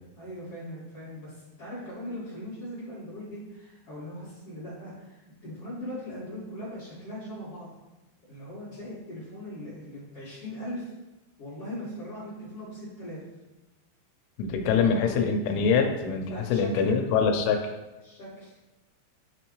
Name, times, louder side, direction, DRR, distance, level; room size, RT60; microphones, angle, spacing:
voice 1, 0.1-7.7 8.3-10.9 11.4-13.2 14.7-15.3 16.3-17.0 18.0-18.6, equal, 55° left, -11 dB, 1.7 m, -40 dB
voice 2, 14.4-17.7, left 5 dB, 80° left, 3 dB, 3.1 m, -24 dB
9.8 x 3.3 x 3.1 m, 1.0 s
omnidirectional pair, 5.8 m